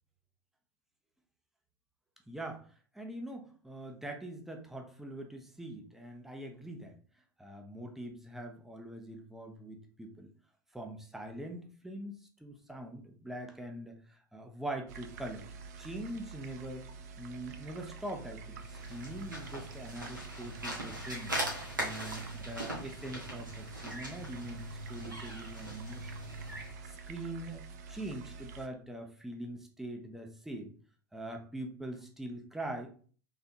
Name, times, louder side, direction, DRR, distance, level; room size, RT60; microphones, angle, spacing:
voice 1, 2.3-2.7 2.9-7.0 7.4-10.3 10.7-15.4 15.8-16.9 17.2-21.3 21.8-26.1 26.8-30.7 31.1-32.9, right 1 dB, 5° right, 3 dB, 0.8 m, -43 dB
sound 1, 14.9-28.7, right 5 dB, 55° right, 0.5 m, -48 dB
sound 2, 18.5-26.8, right 1 dB, 85° right, 1.5 m, -40 dB
4.0 x 3.3 x 2.8 m, 0.42 s
figure-of-eight pair, 80°, 10 cm